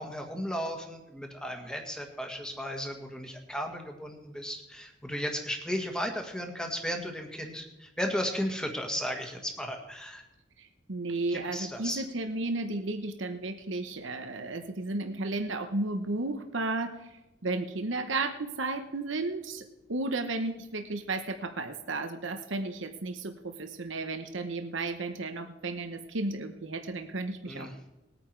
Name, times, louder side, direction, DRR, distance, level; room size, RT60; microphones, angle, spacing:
voice 1, 0.0-10.2 11.3-12.0 27.5-27.7, equal, 5° left, 3 dB, 1.6 m, -35 dB
voice 2, 10.6-19.6 19.9-27.9, right 2 dB, 75° right, 6 dB, 1.0 m, -33 dB
20.0 x 9.3 x 4.6 m, 0.98 s
head